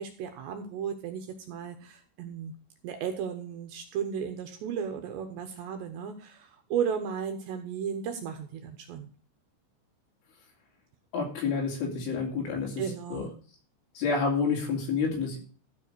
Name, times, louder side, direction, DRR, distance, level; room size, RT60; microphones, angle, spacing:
voice 1, 0.0-2.5 2.8-9.1 12.8-13.3, right 7 dB, 75° right, 6 dB, 2.7 m, -34 dB
voice 2, 11.1-12.8 13.1-13.3 14.0-15.4, left 5 dB, 70° left, 0 dB, 5.3 m, -29 dB
13.0 x 5.5 x 6.6 m, 0.40 s
omnidirectional pair, 5.8 m